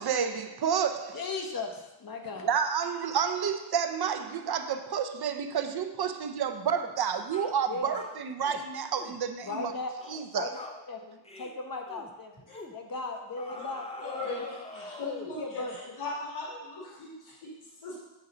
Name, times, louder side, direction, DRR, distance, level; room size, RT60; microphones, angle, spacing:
voice 1, 0.0-1.2 2.4-9.7 10.1-10.5, right 7 dB, 55° right, 8 dB, 0.7 m, -30 dB
voice 2, 1.1-2.6 7.7-8.0 9.4-9.9 10.3-10.5 10.9-14.8 15.4-16.0, left 3 dB, 45° left, 3 dB, 1.1 m, -38 dB
sound 1, 6.7-6.9 7.3-7.5 7.9-8.6 9.0-9.2 9.5-9.7 10.0-10.3 10.5-10.8 11.2-11.5 11.9-12.1 12.5-12.8 13.4-15.4, left 2 dB, 15° left, 0.5 m, -44 dB
voice 3, 14.0-14.4 14.7-17.1 17.4-17.5 17.8-18.0, left 3 dB, 85° left, -5 dB, 2.1 m, -38 dB
7.0 x 6.4 x 3.8 m, 1.0 s
wide cardioid pair, 120°, 48 cm